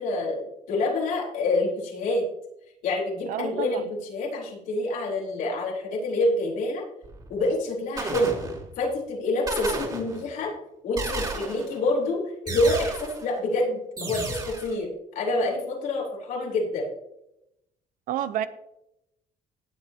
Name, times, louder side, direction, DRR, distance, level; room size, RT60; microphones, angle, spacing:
voice 1, 0.0-2.3 2.8-6.8 7.3-8.3 8.8-10.5 10.8-16.9, left 2 dB, 85° left, -2 dB, 4.2 m, -27 dB
voice 2, 3.3-3.8 18.1-18.5, right 10 dB, 85° right, 13 dB, 0.9 m, -29 dB
sound 1, 7.0-7.4 8.0-8.9 9.5-10.4 11.0-11.8 12.5-13.3 14.0-14.7, right 3 dB, 30° right, 4.0 m, -33 dB
17.5 x 7.6 x 3.0 m, 0.83 s
cardioid pair, 110°, 14 cm